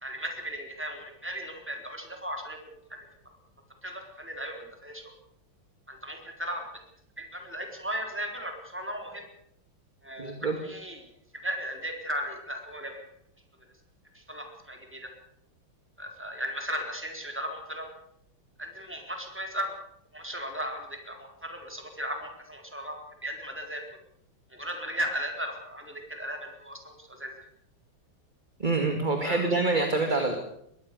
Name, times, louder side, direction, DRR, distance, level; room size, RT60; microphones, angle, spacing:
voice 1, 0.0-3.3 3.8-5.0 5.9-6.6 7.2-9.2 10.0-10.4 10.6-11.0 11.4-13.0 14.1-15.1 16.0-17.9 18.6-19.7 20.1-23.0 23.2-23.8 24.5-27.3 29.2-29.5 30.1-30.4, equal, 5° right, 3 dB, 4.0 m, -36 dB
voice 2, 10.2-10.6 28.6-30.4, right 3 dB, 20° right, 4 dB, 2.3 m, -26 dB
22.0 x 18.0 x 6.8 m, 0.74 s
omnidirectional pair, 2.4 m